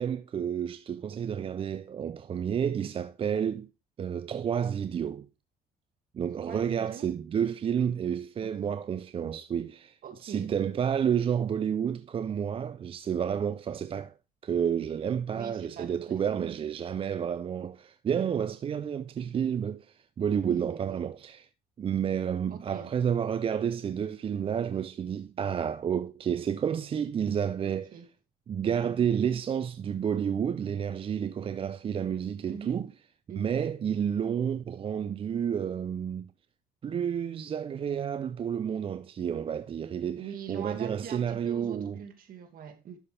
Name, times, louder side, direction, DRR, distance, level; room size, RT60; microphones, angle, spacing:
voice 1, 0.0-3.7 4.0-5.3 6.1-14.1 14.4-21.5 21.8-27.9 28.5-32.9 33.4-36.3 36.8-40.2 40.5-42.0, right 8 dB, 35° right, 0.4 m, -30 dB
voice 2, 6.4-7.1 8.4-8.7 10.0-10.5 15.3-16.5 18.3-18.4 20.5-21.0 22.5-22.9 27.6-28.1 28.8-29.1 32.5-32.8 33.3-33.6 40.1-43.0, right 8 dB, 55° right, 2.1 m, -43 dB
12.0 x 5.6 x 3.3 m
cardioid pair, 110°, 17 cm